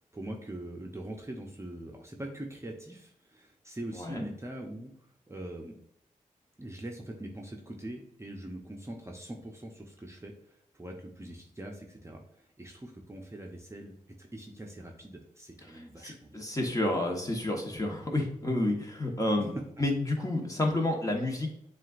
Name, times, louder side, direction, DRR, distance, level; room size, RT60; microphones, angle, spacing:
voice 1, 0.1-4.9 5.3-5.8 6.6-16.4, right 1 dB, 20° right, 0 dB, 0.8 m, -43 dB
voice 2, 3.9-4.3 15.7-19.5 19.8-21.5, left 1 dB, 25° left, 1 dB, 1.3 m, -30 dB
7.3 x 2.5 x 2.5 m, 0.70 s
cardioid pair, 40°, 14 cm